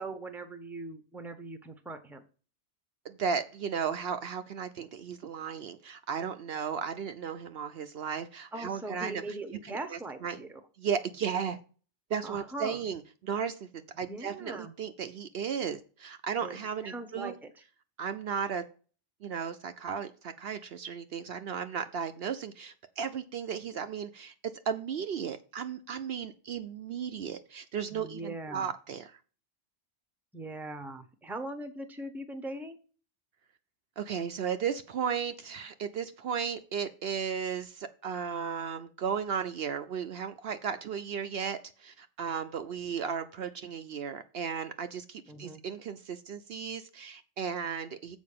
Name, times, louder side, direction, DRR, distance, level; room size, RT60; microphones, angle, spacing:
voice 1, 0.0-2.2 8.5-10.6 12.2-12.8 14.1-14.7 16.4-16.6 16.8-17.5 27.9-28.7 30.3-32.8 45.3-45.6, right 2 dB, ahead, 0.8 m, -40 dB
voice 2, 3.0-9.4 9.6-10.4 10.8-11.6 12.1-13.7 14.0-17.3 18.0-18.6 19.2-29.2 34.0-48.2, right 7 dB, 65° right, 0.8 m, -35 dB
7.3 x 4.8 x 6.6 m
omnidirectional pair, 1.2 m